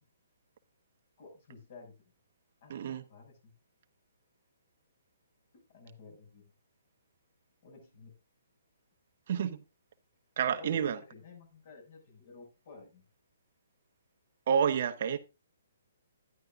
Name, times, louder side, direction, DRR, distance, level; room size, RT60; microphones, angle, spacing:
voice 1, 1.2-2.0 2.6-3.5 5.5-6.5 7.6-8.1 10.5-13.0, left 3 dB, 50° left, 6.4 m, -52 dB
voice 2, 2.7-3.0 9.3-9.6 10.4-11.0 14.5-15.2, right 7 dB, 55° right, 1.0 m, -29 dB
11.5 x 11.0 x 2.6 m
hypercardioid pair, 155°, 0 cm